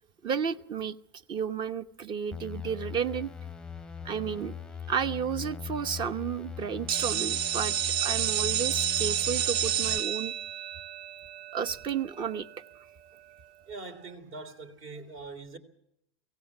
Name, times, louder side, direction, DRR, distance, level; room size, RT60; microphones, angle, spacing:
voice 1, 0.2-1.0 1.3-3.3 4.0-4.6 4.9-7.8 8.0-10.3 11.5-12.5, right 7 dB, 35° right, 1.0 m, -32 dB
sound 1, 2.3-10.0, left 7 dB, 5° left, 0.7 m, -40 dB
sound 2, 6.9-12.5, right 10 dB, 70° right, 0.7 m, -30 dB
voice 2, 13.6-15.6, right 3 dB, 55° right, 3.3 m, -43 dB
23.5 x 17.0 x 7.3 m
supercardioid pair, 125°, 14 cm